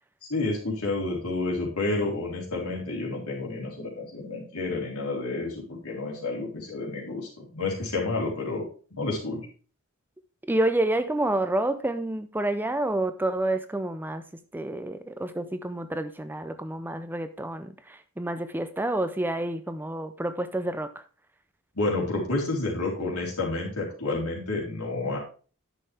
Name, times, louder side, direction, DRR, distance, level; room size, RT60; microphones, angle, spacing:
voice 1, 0.3-8.6 8.9-9.4 21.8-25.2, left 2 dB, 80° left, 3.7 m, -30 dB
voice 2, 10.4-14.2 14.5-21.0, right 1 dB, 10° right, 0.5 m, -29 dB
9.9 x 6.7 x 3.4 m
head